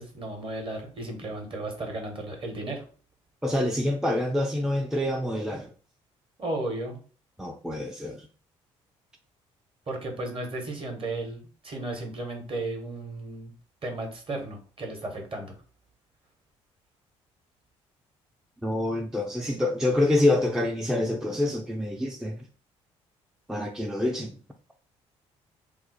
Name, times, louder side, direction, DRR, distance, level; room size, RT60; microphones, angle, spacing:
voice 1, 0.0-2.8 6.4-7.0 9.9-13.5 13.8-15.5, right 2 dB, 35° right, 3 dB, 1.1 m, -34 dB
voice 2, 3.4-5.7 7.4-8.3 18.6-22.4 23.5-24.3, left 1 dB, 5° right, 3 dB, 0.4 m, -26 dB
2.6 x 2.0 x 4.0 m, 0.40 s
hypercardioid pair, 50°, 15 cm